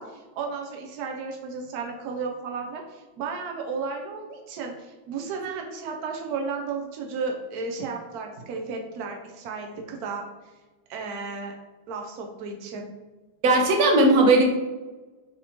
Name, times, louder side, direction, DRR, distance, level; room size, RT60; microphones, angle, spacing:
voice 1, 0.0-10.2 10.9-11.5 11.9-12.9, right 4 dB, 85° right, 1 dB, 0.8 m, -33 dB
voice 2, 13.4-14.4, right 2 dB, 60° right, 2 dB, 1.0 m, -17 dB
6.3 x 2.9 x 2.8 m, 1.2 s
omnidirectional pair, 2.2 m